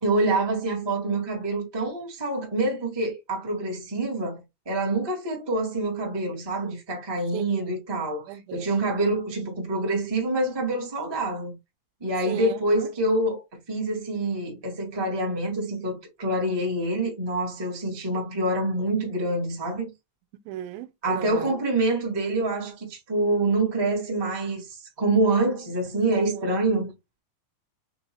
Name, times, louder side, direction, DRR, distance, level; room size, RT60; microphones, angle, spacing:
voice 1, 0.0-4.4 4.6-11.6 12.0-13.4 13.7-19.9 21.0-24.7 25.0-26.9, right 2 dB, 35° right, 0.4 m, -26 dB
voice 2, 7.3-7.7 8.3-8.7 12.3-12.9 20.5-21.5 26.1-26.6, right 13 dB, 85° right, 2.3 m, -36 dB
5.9 x 2.7 x 3.0 m
omnidirectional pair, 4.0 m